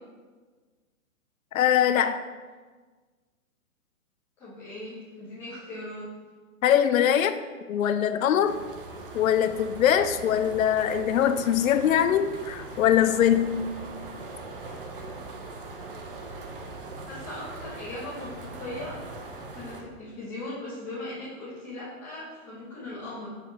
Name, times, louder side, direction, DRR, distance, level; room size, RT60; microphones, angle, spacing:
voice 1, 1.5-2.2 6.6-7.4 7.7-8.6 9.1-13.8, left 9 dB, 70° left, 10 dB, 0.5 m, -22 dB
voice 2, 4.4-6.1 17.1-19.0 19.5-23.3, left 1 dB, 5° left, -11 dB, 0.9 m, -39 dB
sound 1, 8.4-19.8, right 3 dB, 40° right, 0.6 m, -41 dB
5.7 x 4.8 x 3.9 m, 1.4 s
hypercardioid pair, 170°, 43 cm